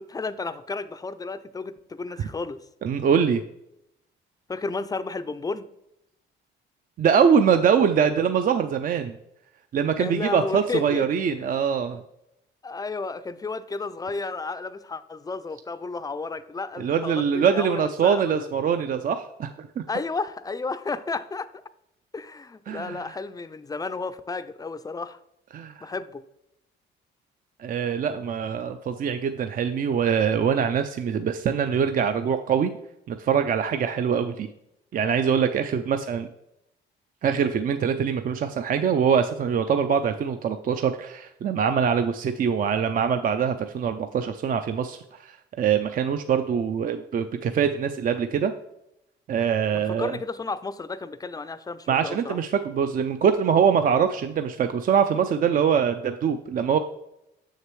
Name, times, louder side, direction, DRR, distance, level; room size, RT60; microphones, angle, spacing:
voice 1, 0.0-2.6 4.5-5.7 10.0-11.1 11.4-11.5 12.6-18.5 19.9-21.5 22.1-25.2 25.8-26.2 49.7-52.4, left 3 dB, 20° left, 13 dB, 0.4 m, -32 dB
voice 2, 2.8-3.4 7.0-9.2 9.7-12.0 16.8-19.8 22.7-23.2 25.5-25.9 27.6-32.7 33.1-34.5 34.9-36.3 37.2-48.5 49.3-50.2 51.9-56.8, right 7 dB, 45° right, 8 dB, 0.4 m, -23 dB
6.7 x 6.4 x 3.2 m, 0.82 s
cardioid pair, 90°, 20 cm